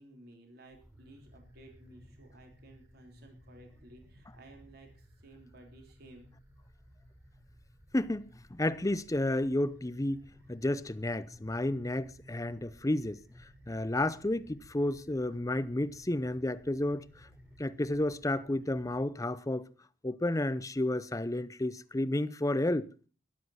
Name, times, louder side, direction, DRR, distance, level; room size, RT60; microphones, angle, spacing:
voice 1, 0.0-6.2, right 2 dB, 55° right, 3.3 m, -55 dB
sound 1, 0.7-19.0, equal, 15° right, 3.3 m, -58 dB
voice 2, 7.9-13.2 13.7-17.1 17.6-19.7 20.0-22.9, left 1 dB, 20° left, 0.6 m, -31 dB
13.0 x 12.0 x 5.6 m
head